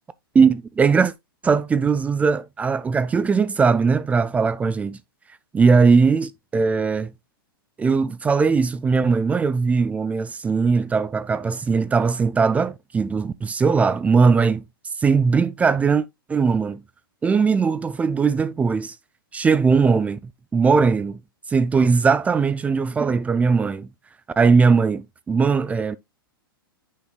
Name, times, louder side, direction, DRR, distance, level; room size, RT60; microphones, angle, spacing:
voice 1, 0.3-1.1 1.4-5.0 5.5-7.1 7.8-14.6 15.0-16.0 16.3-16.8 17.2-18.9 19.3-20.2 20.5-21.2 21.5-23.9 24.4-26.0, right 5 dB, 10° right, 0.3 m, -19 dB
8.5 x 5.0 x 2.2 m
figure-of-eight pair, 105°, 12 cm